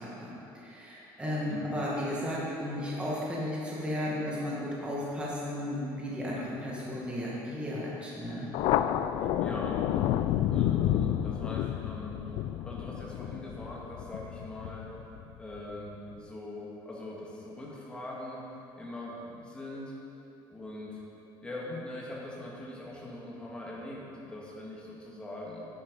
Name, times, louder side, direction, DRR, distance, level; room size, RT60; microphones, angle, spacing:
voice 1, 0.0-8.5, left 1 dB, 10° right, -6 dB, 1.8 m, -34 dB
Thunder, 8.5-15.6, left 12 dB, 65° left, 0.4 m, -30 dB
voice 2, 9.2-14.9 15.4-18.4 18.7-19.9 20.5-21.0 21.4-25.7, left 1 dB, 10° left, -5 dB, 1.9 m, -42 dB
10.0 x 9.6 x 5.3 m, 3.0 s
cardioid pair, 175°, 10 cm